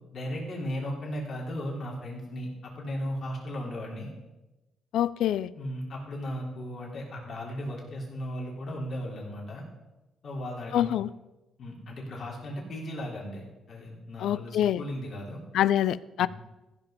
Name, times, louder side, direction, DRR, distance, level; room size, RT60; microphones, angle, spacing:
voice 1, 0.1-4.1 5.6-9.6 10.2-10.9 11.6-15.4 16.2-16.3, equal, 55° left, -2 dB, 3.6 m, -36 dB
voice 2, 4.9-5.5 10.7-11.1 14.2-14.8 15.5-16.3, left 11 dB, 80° left, 19 dB, 0.3 m, -25 dB
15.0 x 5.9 x 5.1 m, 1.0 s
cardioid pair, 90°, 0 cm